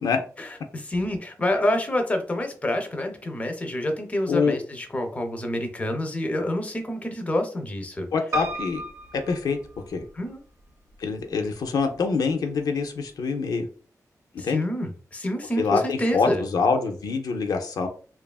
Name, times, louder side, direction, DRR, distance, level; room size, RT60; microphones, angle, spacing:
voice 1, 0.4-8.1 10.1-10.4 14.4-16.4, left 1 dB, 20° left, 4 dB, 0.4 m, -27 dB
voice 2, 8.1-8.8 9.3-9.6 9.9-10.0 11.0-13.7 14.3-14.6 15.6-17.9, left 5 dB, 85° left, 4 dB, 0.4 m, -25 dB
Piano, 8.3-10.3 10.9-11.6 12.0-12.1 12.3-12.4, right 2 dB, 55° right, 0.4 m, -34 dB
2.7 x 2.2 x 2.3 m, 0.41 s
wide cardioid pair, 125°, 6 cm